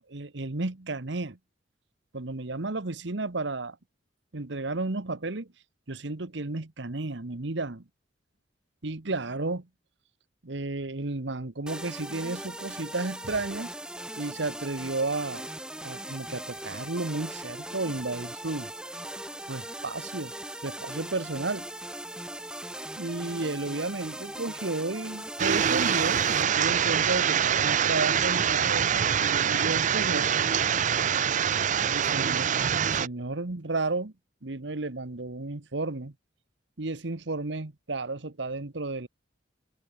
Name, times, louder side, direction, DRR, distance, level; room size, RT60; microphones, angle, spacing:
voice 1, 0.1-1.4 2.1-3.8 4.3-5.5 5.9-7.8 8.8-9.7 10.4-13.7 14.2-15.5 15.8-18.7 19.5-20.3 20.6-21.7 22.9-30.3 31.9-32.5 32.8-34.1 34.4-36.1 36.8-39.1, right 2 dB, 70° right, 1.3 m, -33 dB
sound 1, 11.7-26.4, right 1 dB, 5° right, 1.6 m, -39 dB
sound 2, 25.4-33.1, right 8 dB, 45° right, 0.5 m, -25 dB
head